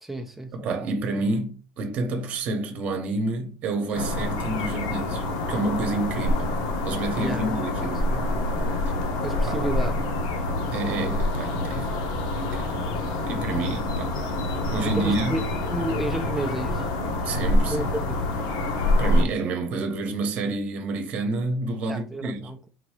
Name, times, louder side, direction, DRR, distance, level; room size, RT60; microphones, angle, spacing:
voice 1, 0.0-0.6 7.2-7.7 8.1-8.3 8.6-8.7 9.2-10.2 14.8-16.9 17.7-18.3 21.9-22.7, right 1 dB, 5° right, 0.4 m, -32 dB
voice 2, 0.5-6.5 6.8-8.1 9.5-9.6 10.7-11.9 12.4-12.8 13.2-14.2 14.7-15.4 17.2-17.9 19.0-22.5, right 3 dB, 35° right, 0.9 m, -29 dB
sound 1, 3.9-19.2, left 1 dB, 85° left, 1.1 m, -26 dB
3.8 x 2.7 x 4.7 m
cardioid pair, 160°, 4 cm